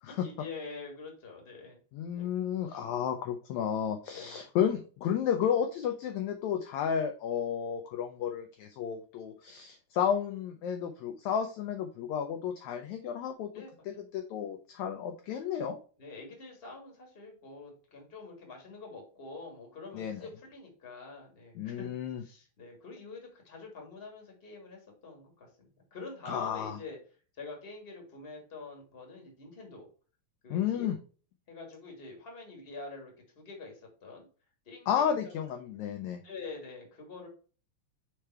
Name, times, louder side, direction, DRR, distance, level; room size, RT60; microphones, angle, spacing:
voice 1, 0.1-1.8 2.2-2.3 2.7-2.8 4.1-4.4 13.5-14.1 14.9-15.0 16.0-21.9 22.2-25.5 25.9-27.0 27.4-29.9 30.4-30.9 31.5-34.2 34.6-35.4 36.2-37.3, left 3 dB, 25° left, 2 dB, 1.6 m, -46 dB
voice 2, 1.9-15.8 19.9-20.3 21.6-22.2 26.3-26.8 30.5-31.0 34.9-36.2, left 8 dB, 80° left, 6 dB, 1.7 m, -32 dB
5.1 x 4.5 x 4.4 m, 0.38 s
omnidirectional pair, 3.8 m